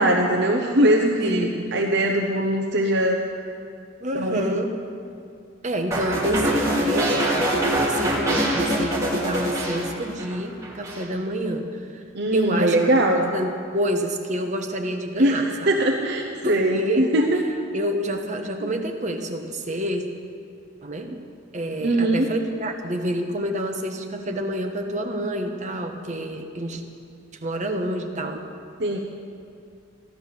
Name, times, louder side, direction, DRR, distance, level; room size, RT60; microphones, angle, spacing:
voice 1, 0.0-3.2 4.1-4.6 12.1-13.3 15.2-17.4 18.6-18.7 21.8-22.3 28.8-29.0, right 1 dB, 55° right, 1 dB, 0.9 m, -21 dB
voice 2, 1.2-1.6 4.0-4.7 5.6-12.0 12.3-12.8 13.1-15.7 16.4-17.1 17.7-20.0 20.8-21.1 21.5-26.8 27.3-28.4, right 1 dB, 35° right, 4 dB, 1.2 m, -28 dB
sound 1, 5.9-10.4 10.6-11.0, right 1 dB, 15° right, 2.8 m, -24 dB
15.0 x 11.5 x 7.0 m, 2.4 s
head